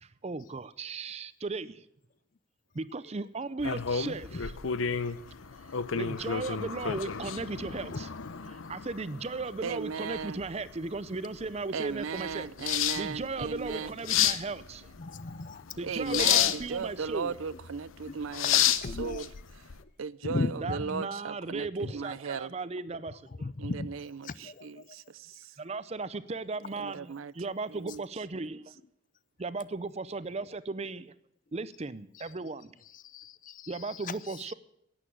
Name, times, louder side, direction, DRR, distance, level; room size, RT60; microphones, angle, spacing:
voice 1, 0.0-1.8 2.7-4.6 6.0-8.1 8.5-14.9 15.8-17.4 20.6-23.2 25.6-28.7 29.4-31.1 31.5-32.7 33.7-34.5, right 3 dB, 30° right, 0.5 m, -36 dB
sound 1, 3.6-19.8, left 9 dB, 85° left, 0.7 m, -31 dB
voice 2, 9.6-10.4 11.7-13.9 15.8-18.6 19.0-19.3 20.0-22.5 23.6-25.5 26.8-27.3 27.7-28.0, right 5 dB, 85° right, 0.5 m, -36 dB
voice 3, 15.0-15.8 16.1-16.6 18.1-18.2 18.5-19.2 20.2-20.8 21.8-21.9 23.4-23.9 24.2-24.8 32.9-34.4, left 3 dB, 40° left, 0.5 m, -36 dB
11.0 x 9.1 x 9.9 m
head